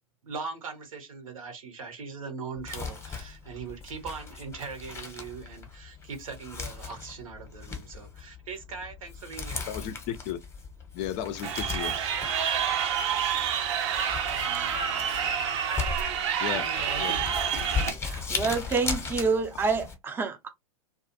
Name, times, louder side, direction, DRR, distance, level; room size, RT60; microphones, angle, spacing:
voice 1, 0.2-9.7 15.7-17.2, right 5 dB, 75° right, 1.0 m, -40 dB
Crumpling crinkling, 2.6-19.9, left 5 dB, 15° left, 0.8 m, -38 dB
voice 2, 9.7-10.4 10.9-12.1 16.4-17.1, left 10 dB, 40° left, 0.4 m, -34 dB
Crowd, 11.4-17.9, right 8 dB, 55° right, 0.7 m, -28 dB
voice 3, 17.9-20.5, right 4 dB, 10° right, 0.5 m, -28 dB
2.4 x 2.3 x 2.5 m
hypercardioid pair, 100°, 18 cm